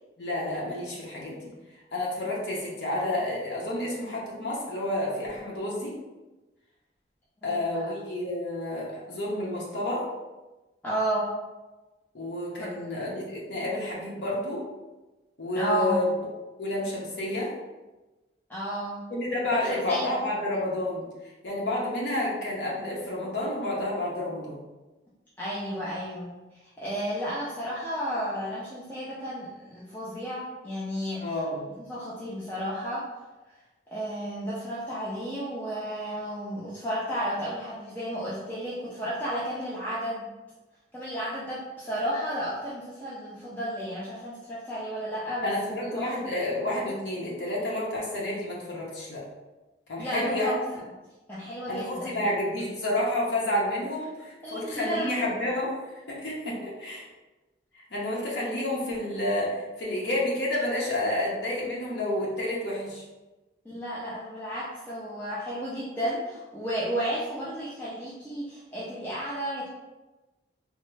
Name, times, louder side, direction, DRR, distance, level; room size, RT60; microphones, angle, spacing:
voice 1, 0.2-1.5 1.9-5.9 7.4-10.0 12.1-14.6 15.4-16.1 16.6-17.5 19.1-21.0 21.4-24.6 31.2-31.7 45.4-49.2 49.9-50.6 51.7-55.7 56.1-57.0 57.9-63.0, left 1 dB, 75° left, -5 dB, 0.8 m, -30 dB
voice 2, 7.4-7.9 10.8-11.3 12.6-12.7 15.5-16.0 18.5-19.0 19.5-20.1 25.4-26.3 26.8-31.4 31.9-33.1 33.9-40.3 40.9-46.1 50.0-50.6 51.3-52.2 54.4-55.2 63.6-69.7, equal, 10° left, -9 dB, 0.4 m, -32 dB
3.4 x 2.1 x 3.2 m, 1.1 s
head